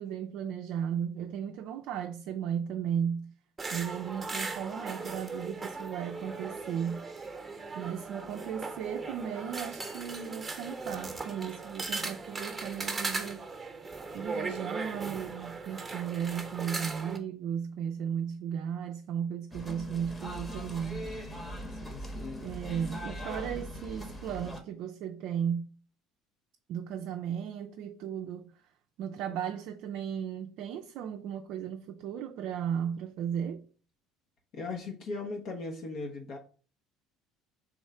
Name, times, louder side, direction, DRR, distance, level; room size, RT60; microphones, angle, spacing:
voice 1, 0.0-3.3 3.7-7.1 7.7-13.5 14.1-21.1 22.4-25.7 26.7-28.6 29.0-33.7, right 8 dB, 65° right, 0.4 m, -35 dB
sound 1, 3.6-17.2, right 3 dB, 20° right, 0.9 m, -38 dB
sound 2, 19.5-24.6, equal, 20° left, 1.0 m, -40 dB
voice 2, 21.7-22.5 34.5-36.4, left 3 dB, 60° left, 0.8 m, -38 dB
3.5 x 3.1 x 4.7 m
hypercardioid pair, 75°, 0 cm